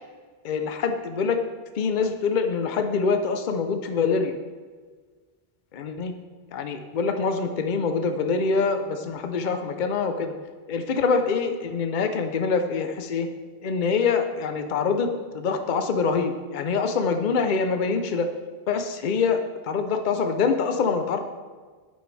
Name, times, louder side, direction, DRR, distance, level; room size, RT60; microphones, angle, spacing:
voice 1, 0.4-1.4 1.8-4.3 5.7-6.1 6.5-10.3 10.7-13.3 13.6-18.3 18.7-21.2, left 5 dB, 50° left, 7 dB, 0.8 m, -25 dB
10.0 x 7.9 x 3.3 m, 1.5 s
omnidirectional pair, 1.1 m